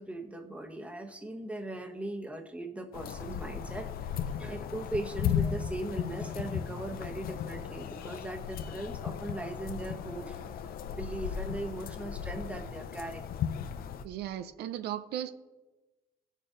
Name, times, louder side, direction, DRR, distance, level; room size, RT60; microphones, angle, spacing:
voice 1, 0.0-13.4, right 2 dB, 5° right, 4 dB, 1.2 m, -39 dB
sound 1, 2.9-14.0, left 8 dB, 60° left, 0.7 m, -36 dB
voice 2, 14.0-15.3, right 11 dB, 75° right, 11 dB, 0.6 m, -36 dB
16.5 x 6.5 x 3.8 m, 1.1 s
cardioid pair, 110°, 17 cm